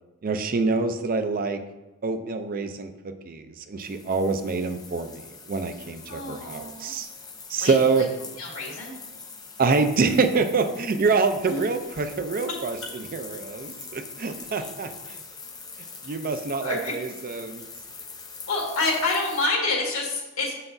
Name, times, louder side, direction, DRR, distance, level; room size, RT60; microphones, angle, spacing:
voice 1, 0.2-1.6 2.0-7.1 7.5-8.1 9.6-15.2 16.0-17.6, right 4 dB, 45° right, 8 dB, 0.5 m, -26 dB
sound 1, 3.8-19.5, left 4 dB, 20° left, 0.6 m, -43 dB
voice 2, 6.1-6.9 7.6-8.0 8.4-8.9 11.5-11.7 14.6-14.7 16.6-16.9 18.5-20.5, left 3 dB, 85° left, -2 dB, 1.8 m, -28 dB
6.9 x 5.8 x 2.6 m, 1.1 s
head